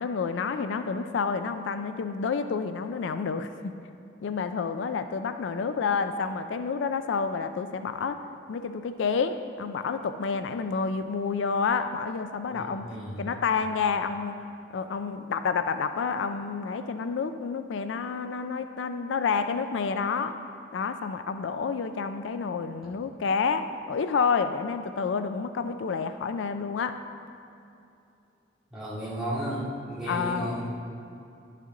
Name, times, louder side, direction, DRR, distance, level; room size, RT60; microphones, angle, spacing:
voice 1, 0.0-3.7 4.2-8.2 8.5-12.9 13.2-14.4 14.7-20.3 20.7-27.0 30.1-30.5, left 5 dB, 75° left, 9 dB, 0.4 m, -29 dB
voice 2, 12.5-13.3 28.7-30.6, equal, 5° right, -9 dB, 2.1 m, -34 dB
11.0 x 6.6 x 3.8 m, 2.7 s
head